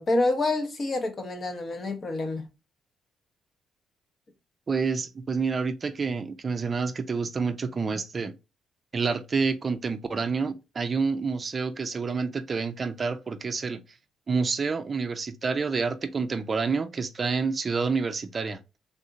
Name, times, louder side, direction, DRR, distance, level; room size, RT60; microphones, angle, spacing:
voice 1, 0.0-2.5, left 2 dB, 40° left, 0.8 m, -27 dB
voice 2, 4.7-8.3 8.9-13.8 14.3-18.6, right 4 dB, 35° right, 0.4 m, -28 dB
3.5 x 2.7 x 2.4 m
cardioid pair, 90°, 0 cm